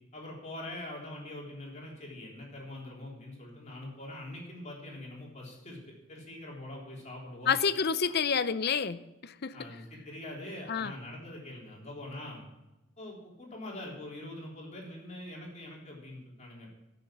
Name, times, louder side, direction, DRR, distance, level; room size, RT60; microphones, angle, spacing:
voice 1, 0.1-7.6 8.1-8.2 9.5-12.4 13.0-16.8, left 1 dB, 35° left, 3.6 m, -43 dB
voice 2, 7.5-9.6 10.7-10.9, left 6 dB, 50° left, 0.6 m, -29 dB
15.5 x 6.9 x 7.3 m
head